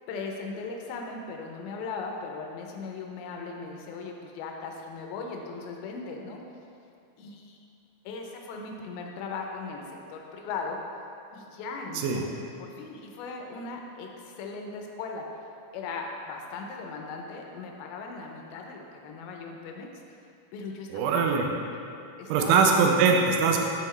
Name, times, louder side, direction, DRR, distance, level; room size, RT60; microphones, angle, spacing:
voice 1, 0.1-6.4 7.2-7.6 8.1-10.8 11.3-15.3 15.7-20.2 20.5-21.1 21.7-21.8 22.2-22.5, left 4 dB, 90° left, 1 dB, 2.5 m, -38 dB
voice 2, 20.9-21.5 22.3-23.6, right 5 dB, 80° right, 2 dB, 1.9 m, -22 dB
6.9 x 5.6 x 3.1 m, 2.6 s
omnidirectional pair, 4.2 m